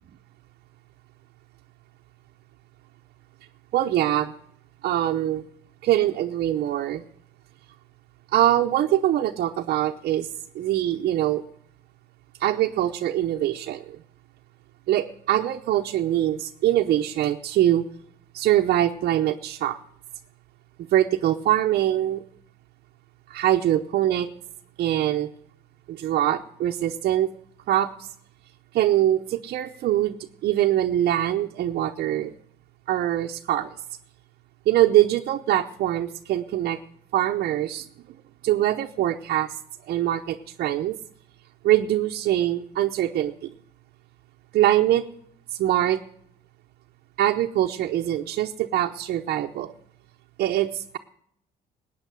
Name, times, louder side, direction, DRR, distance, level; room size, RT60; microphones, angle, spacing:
voice 1, 3.7-4.3 4.8-5.4 5.8-7.0 8.3-10.3 10.5-11.4 12.4-14.0 14.9-17.8 18.3-19.8 20.9-22.2 23.3-24.3 24.8-25.3 25.9-27.3 27.7-27.9 28.7-30.2 30.4-32.3 32.9-33.7 34.7-36.8 37.1-37.8 38.4-39.5 39.9-41.0 41.6-43.5 44.5-45.0 45.6-46.0 47.2-49.7 50.4-51.0, right 12 dB, 65° right, 2 dB, 0.8 m, -23 dB
19.5 x 9.0 x 6.3 m, 0.68 s
cardioid pair, 110°, 17 cm